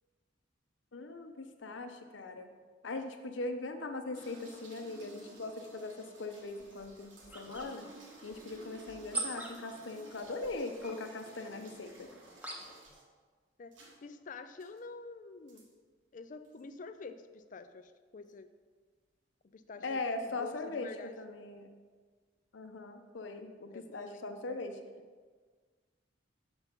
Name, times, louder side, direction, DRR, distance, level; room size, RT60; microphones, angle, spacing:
voice 1, 0.9-2.5 2.8-7.9 8.2-12.2 19.8-20.9 21.2-21.7 22.5-24.8, left 2 dB, 70° left, 6 dB, 0.7 m, -40 dB
sound 1, 4.1-13.0 13.7-14.0 14.6-14.8 15.5-15.7 16.4-16.6, right 1 dB, 70° right, 1.2 m, -55 dB
sound 2, 6.4-12.9, right 2 dB, 10° right, 0.8 m, -45 dB
voice 2, 14.0-15.7 16.1-18.5 19.5-21.2 23.7-24.3, left 4 dB, 40° left, 10 dB, 0.4 m, -48 dB
6.0 x 5.6 x 5.2 m, 1.5 s
head